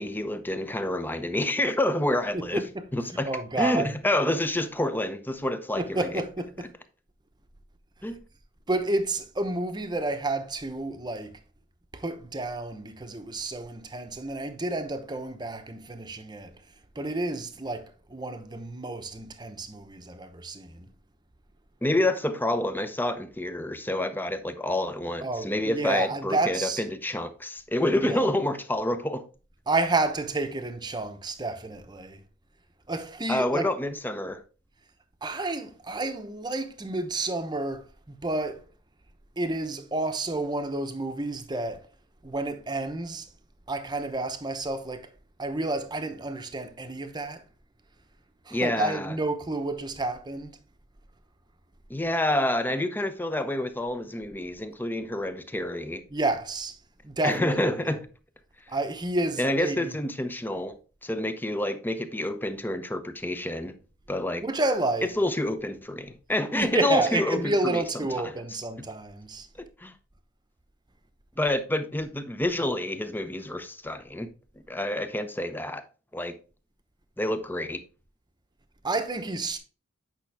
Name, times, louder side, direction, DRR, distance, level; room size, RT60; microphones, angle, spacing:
voice 1, 0.0-2.6 2.9-3.3 3.6-6.2 8.0-8.2 21.8-29.3 33.3-34.4 48.5-49.2 51.9-56.0 57.2-58.1 59.4-63.7 64.1-64.4 65.2-67.8 68.2-68.3 69.6-69.9 71.4-74.3 74.7-75.8 76.1-76.3 77.2-77.8, left 1 dB, 10° left, 0.7 m, -28 dB
voice 2, 2.3-3.9 5.8-6.7 8.7-11.4 11.9-16.6 17.0-20.9 25.2-26.9 27.8-28.3 29.7-32.2 32.9-33.7 35.2-38.6 39.4-41.9 42.2-43.3 43.7-45.1 45.4-47.4 48.5-50.5 56.1-56.8 57.0-58.0 58.7-59.9 64.4-65.2 66.5-69.5 78.8-79.6, right 2 dB, 20° right, 0.9 m, -30 dB
8.9 x 5.6 x 3.4 m
head